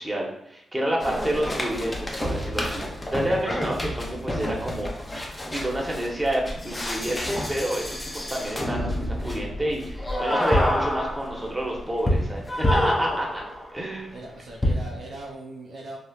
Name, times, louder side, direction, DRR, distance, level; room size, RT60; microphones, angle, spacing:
voice 1, 0.0-2.8 3.1-4.9 5.5-13.4 13.7-14.1, right 1 dB, 20° right, -1 dB, 0.9 m, -29 dB
sound 1, 1.0-13.8 14.6-15.0, equal, 25° left, 0.6 m, -28 dB
voice 2, 14.1-16.0, right 2 dB, 70° right, -2 dB, 0.5 m, -40 dB
3.2 x 2.0 x 2.3 m, 0.80 s
supercardioid pair, 50°, 0 cm